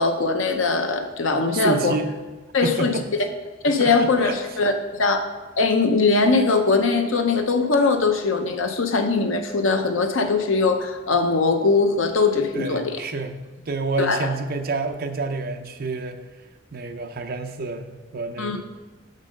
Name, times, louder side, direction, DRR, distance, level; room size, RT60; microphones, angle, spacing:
voice 1, 0.0-2.0 2.5-3.0 3.6-5.3 5.6-12.9 14.0-14.3 18.4-18.6, left 3 dB, 75° left, 6 dB, 0.7 m, -21 dB
voice 2, 1.5-2.1 2.6-3.0 3.8-4.4 12.5-16.2 16.7-18.6, right 3 dB, 50° right, 5 dB, 0.6 m, -29 dB
6.4 x 5.3 x 5.2 m, 1.3 s
head